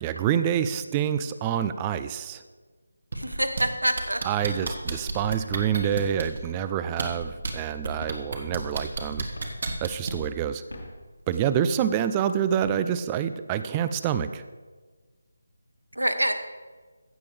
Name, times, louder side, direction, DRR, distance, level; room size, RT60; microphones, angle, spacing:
voice 1, 0.0-2.4 4.2-9.3 9.8-10.6 11.3-14.4, right 9 dB, 15° right, 12 dB, 0.4 m, -27 dB
sound 1, 3.1-3.6 4.0-6.4 6.9-7.5 7.8-10.3 11.3-11.4, right 3 dB, 50° right, 1.4 m, -31 dB
voice 2, 3.1-4.2 16.0-16.3, right 1 dB, 85° right, 9 dB, 1.0 m, -26 dB
sound 2, 3.2-3.7 4.1-5.1 5.7-7.5 7.9-9.0 9.3-9.9 10.5-11.6 12.1-12.2 12.4-13.3, left 1 dB, 80° left, 2.8 m, -43 dB
15.5 x 6.9 x 3.4 m, 1.4 s
figure-of-eight pair, 160°, 0 cm